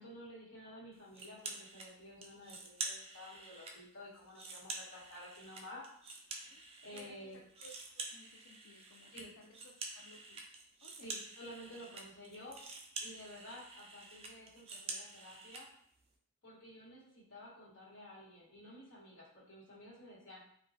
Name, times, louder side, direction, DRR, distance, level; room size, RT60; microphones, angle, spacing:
voice 1, 0.0-5.8 6.3-7.4 9.1-9.3 11.0-12.6 13.0-15.7 16.4-20.4, left 1 dB, 60° left, -6 dB, 1.0 m, -52 dB
sound 1, 1.1-1.9 2.2-3.7 4.1-7.0 7.3-15.6, right 3 dB, 25° right, 0.3 m, -47 dB
voice 2, 6.9-10.4 10.8-11.2, left 1 dB, 90° left, -1 dB, 0.3 m, -60 dB
2.9 x 2.2 x 2.5 m, 0.66 s
head